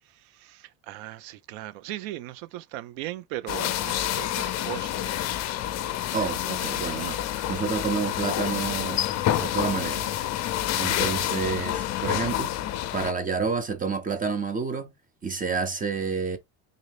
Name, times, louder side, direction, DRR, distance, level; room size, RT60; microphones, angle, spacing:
voice 1, 0.0-5.3, right 15 dB, 85° right, 0.6 m, -38 dB
sound 1, 3.5-13.1, left 12 dB, 40° left, 0.5 m, -28 dB
voice 2, 6.1-9.0 9.3-10.1 10.7-12.6 12.9-14.9 15.2-16.4, right 5 dB, 20° right, 0.4 m, -29 dB
3.9 x 2.6 x 3.2 m
cardioid pair, 130°, 44 cm